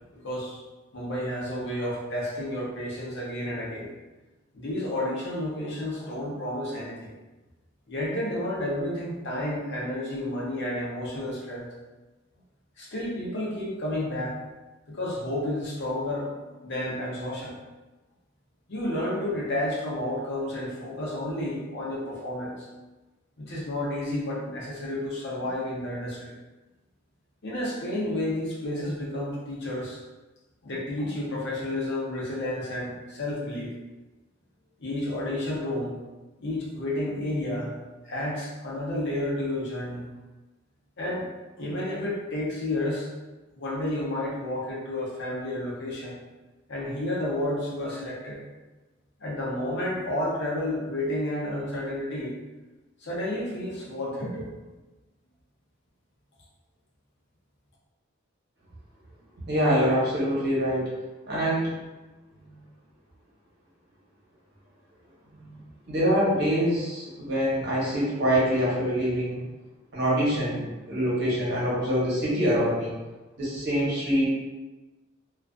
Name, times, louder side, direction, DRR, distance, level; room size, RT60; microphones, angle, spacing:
voice 1, 0.2-0.6 0.9-3.9 4.5-7.1 7.9-11.7 12.8-14.4 14.9-17.5 18.7-22.7 23.4-26.3 27.4-30.0 30.6-33.7 34.8-35.9 36.4-37.7 38.0-40.1 41.0-41.3 41.6-43.1 43.6-46.1 46.7-48.4 49.2-52.3 53.0-54.5, left 1 dB, 55° left, -4 dB, 0.6 m, -31 dB
voice 2, 59.5-60.9 61.3-61.8 65.3-65.4 65.9-69.4 69.9-72.9 73.4-74.3, equal, 55° right, -7 dB, 0.9 m, -25 dB
2.4 x 2.3 x 2.4 m, 1.1 s
head